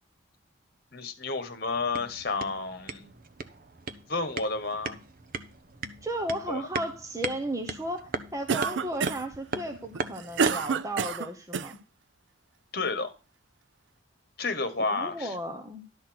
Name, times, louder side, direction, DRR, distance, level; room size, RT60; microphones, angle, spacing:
voice 1, 0.9-3.1 4.1-5.0 6.5-6.7 12.7-13.1 14.4-15.3, left 3 dB, 50° left, 1.5 m, -31 dB
sound 1, 1.7-10.8, right 4 dB, 45° right, 0.8 m, -38 dB
voice 2, 6.0-11.8 14.9-15.8, right 1 dB, 15° right, 0.9 m, -34 dB
Cough, 8.5-9.4 9.9-11.7, right 6 dB, 65° right, 0.4 m, -28 dB
12.0 x 4.3 x 7.7 m
head